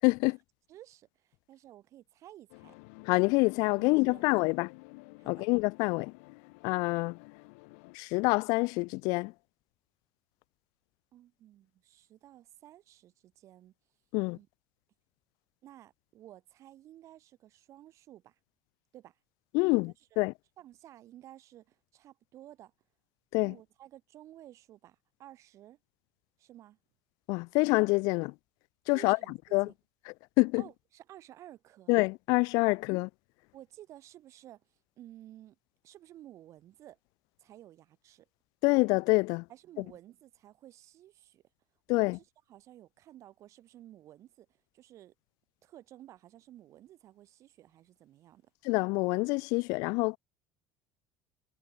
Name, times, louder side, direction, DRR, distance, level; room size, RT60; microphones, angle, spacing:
voice 1, 0.0-0.4 3.1-4.7 5.3-6.1 6.6-7.2 7.9-9.3 14.1-14.4 19.5-20.3 23.3-23.5 27.3-28.3 28.9-29.2 29.5-29.7 30.4-30.6 31.9-33.1 38.6-39.5 41.9-42.2 48.6-50.2, left 27 dB, 70° left, 0.4 m, -26 dB
voice 2, 0.7-2.8 3.8-4.6 5.2-5.5 11.1-13.7 14.3-14.5 15.6-18.4 18.9-19.2 19.6-19.9 20.6-22.7 23.4-25.8 26.4-26.8 28.9-29.7 30.6-31.9 32.7-32.8 33.5-35.6 35.8-37.0 37.4-38.3 39.5-41.4 41.9-45.1 45.6-48.5, right 13 dB, 45° right, 2.5 m, -54 dB
sound 1, 2.5-8.0, left 32 dB, 85° left, 3.3 m, -52 dB
cardioid pair, 140°, 7 cm